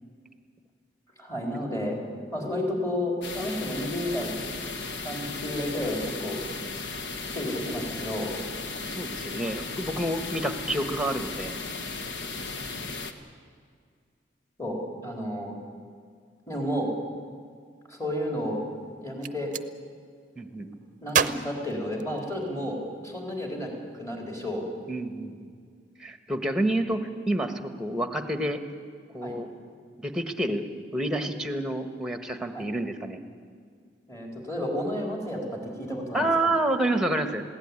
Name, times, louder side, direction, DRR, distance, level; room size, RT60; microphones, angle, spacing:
voice 1, 1.2-2.0 2.3-4.3 5.0-6.4 7.3-8.3 14.6-15.6 16.5-16.9 17.9-18.6 19.0-19.5 21.0-22.8 23.0-24.6 29.2-29.4 32.5-32.7 34.1-36.3, left 1 dB, 15° left, 0 dB, 4.2 m, -31 dB
sound 1, 3.2-13.1, left 3 dB, 75° left, 1.5 m, -36 dB
voice 2, 8.9-11.6 12.4-12.5 20.3-20.8 24.9-25.5 26.0-28.6 29.1-29.5 30.0-30.6 30.9-33.2 36.1-37.4, right 1 dB, 5° right, 7 dB, 1.4 m, -28 dB
Gunshot gunfire, 19.0-19.7 21.1-22.6, right 7 dB, 45° right, 0.6 m, -29 dB
21.0 x 16.5 x 9.8 m, 2.1 s
head